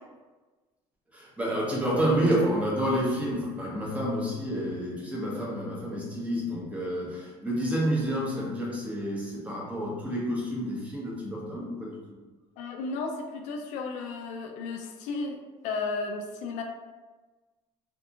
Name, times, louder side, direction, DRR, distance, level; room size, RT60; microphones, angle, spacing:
voice 1, 1.1-12.0, equal, 10° right, -5 dB, 0.8 m, -29 dB
voice 2, 12.6-16.6, left 3 dB, 70° left, 3 dB, 0.4 m, -34 dB
2.7 x 2.5 x 2.4 m, 1.3 s
cardioid pair, 130°, 12 cm